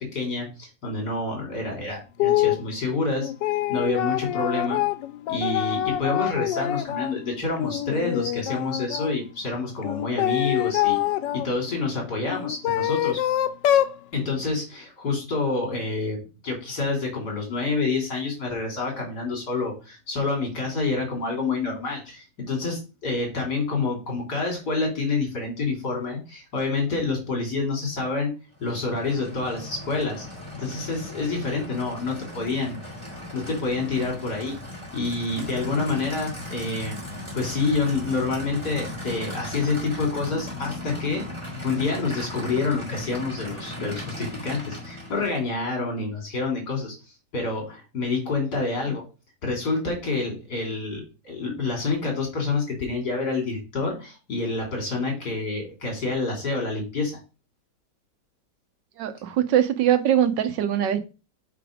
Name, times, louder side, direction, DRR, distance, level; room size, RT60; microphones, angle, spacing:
voice 1, 0.0-3.3 3.7-4.8 5.3-11.0 11.3-13.2 14.1-28.3 28.6-30.2 30.5-32.8 33.3-34.5 34.9-37.0 37.3-41.2 41.6-47.0 47.3-49.0 49.4-57.2, left 3 dB, 65° left, 0 dB, 3.6 m, -28 dB
sound 1, 2.2-2.6 3.1-7.2 7.6-9.1 9.8-11.5 12.3-14.0, left 13 dB, 85° left, 1.3 m, -25 dB
Aircraft / Idling, 28.5-45.5, left 1 dB, 15° right, 4.0 m, -37 dB
voice 2, 59.0-61.0, right 10 dB, 80° right, 9 dB, 1.6 m, -22 dB
5.9 x 5.2 x 5.0 m, 0.31 s
omnidirectional pair, 1.9 m